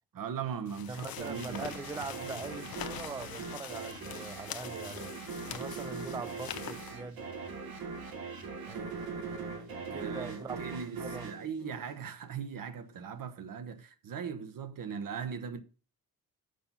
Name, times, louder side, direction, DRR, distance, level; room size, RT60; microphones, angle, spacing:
voice 1, 0.1-1.6 2.2-2.3 8.6-9.0 9.8-15.6, right 7 dB, 65° right, 1.1 m, -39 dB
sound 1, 0.7-6.9, left 10 dB, 80° left, 0.7 m, -44 dB
voice 2, 0.9-5.1 5.5-7.2 8.7-10.6 11.0-11.3, right 4 dB, 10° right, 0.3 m, -42 dB
sound 2, 1.2-12.4, right 4 dB, 90° right, 1.8 m, -41 dB
6.7 x 5.7 x 6.8 m
wide cardioid pair, 150°, 35 cm